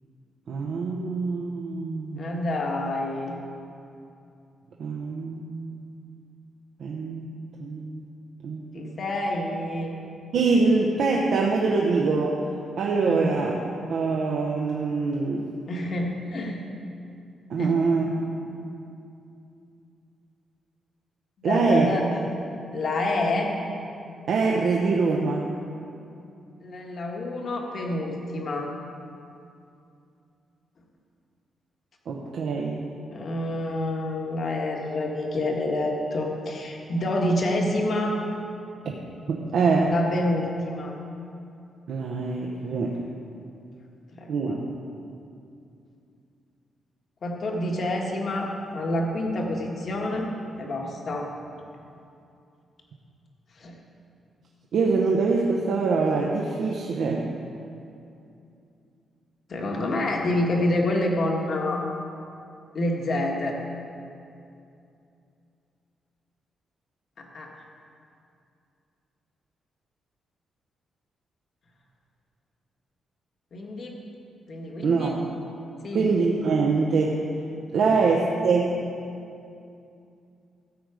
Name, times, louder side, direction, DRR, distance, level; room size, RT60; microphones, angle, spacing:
voice 1, 0.5-2.4 4.8-5.9 6.8-7.3 7.6-8.0 8.4-8.9 10.3-12.4 12.8-13.5 13.9-15.5 17.5-18.1 18.4-18.6 21.4-21.9 24.3-25.5 32.1-32.8 38.8-38.9 39.3-39.9 41.9-43.0 44.3-44.6 54.7-57.3 74.8-75.2 75.9-77.2 77.7-78.8, right 4 dB, 65° right, -1 dB, 0.9 m, -24 dB
voice 2, 2.2-3.4 8.7-9.9 13.1-13.3 15.7-16.6 17.6-17.9 21.4-22.2 22.7-23.5 26.6-28.7 33.1-38.2 39.9-41.0 44.1-44.6 47.2-50.3 50.6-51.3 53.6-53.8 59.5-61.8 62.7-63.6 67.2-67.5 73.5-74.0 74.5-75.1 75.8-76.1 77.8-78.0, left 1 dB, 45° left, 1 dB, 1.5 m, -28 dB
14.0 x 8.0 x 5.0 m, 2.6 s
wide cardioid pair, 155°, 0 cm